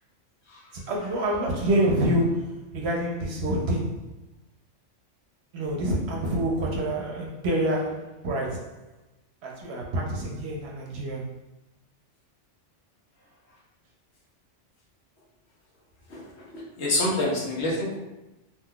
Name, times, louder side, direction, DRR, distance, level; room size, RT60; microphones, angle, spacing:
voice 1, 0.9-4.1 5.5-8.8 9.4-11.3, right 1 dB, 65° right, -1 dB, 0.8 m, -27 dB
voice 2, 16.1-16.5 16.8-18.0, left 1 dB, 65° left, -4 dB, 1.2 m, -27 dB
3.7 x 2.7 x 2.2 m, 0.96 s
omnidirectional pair, 1.3 m